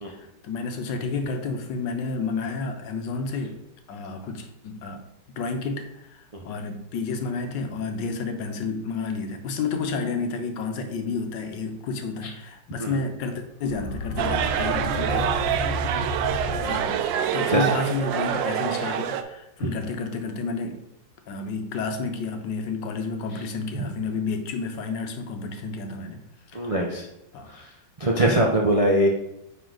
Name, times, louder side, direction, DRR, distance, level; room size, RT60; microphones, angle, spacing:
voice 1, 0.1-3.6 3.9-5.0 5.4-15.2 16.6-17.1 17.3-20.8 21.3-26.2 26.5-26.7 27.3-27.5, left 4 dB, 75° left, 6 dB, 1.4 m, -30 dB
sound 1, 13.6-17.3, left 1 dB, 55° left, 1.4 m, -32 dB
sound 2, 14.2-19.2, right 9 dB, 80° right, 1.3 m, -26 dB
voice 2, 26.5-27.0 28.0-29.1, right 1 dB, 55° right, -1 dB, 0.3 m, -21 dB
9.4 x 3.9 x 3.9 m, 0.85 s
omnidirectional pair, 2.1 m